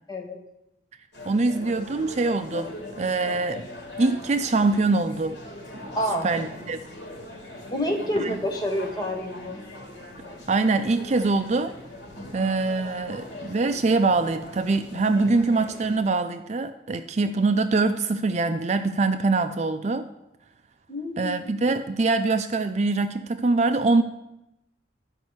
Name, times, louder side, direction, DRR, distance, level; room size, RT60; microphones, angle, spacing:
voice 1, 0.1-0.4 5.9-6.3 7.7-9.6 20.9-21.3, equal, 20° left, 2 dB, 1.3 m, -28 dB
sound 1, 1.1-16.0, left 1 dB, 60° left, 2.9 m, -41 dB
voice 2, 1.3-2.7 3.0-3.7 4.0-5.4 6.2-6.9 8.2-8.4 10.5-11.7 12.3-20.1 21.2-24.0, right 3 dB, 35° right, 9 dB, 0.4 m, -23 dB
11.5 x 5.2 x 7.8 m, 0.89 s
head